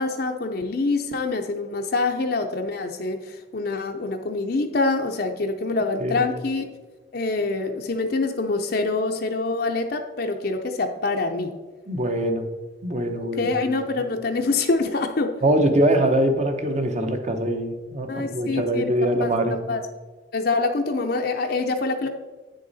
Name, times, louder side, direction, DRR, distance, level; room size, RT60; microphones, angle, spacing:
voice 1, 0.0-6.6 7.1-11.5 13.4-15.3 18.1-18.9 19.2-19.3 19.7-19.8 20.3-22.1, left 3 dB, 55° left, 4 dB, 0.6 m, -25 dB
voice 2, 11.9-12.5 12.8-13.5 15.4-19.6, right 1 dB, 40° right, 5 dB, 0.9 m, -23 dB
8.9 x 6.5 x 4.1 m, 1.2 s
head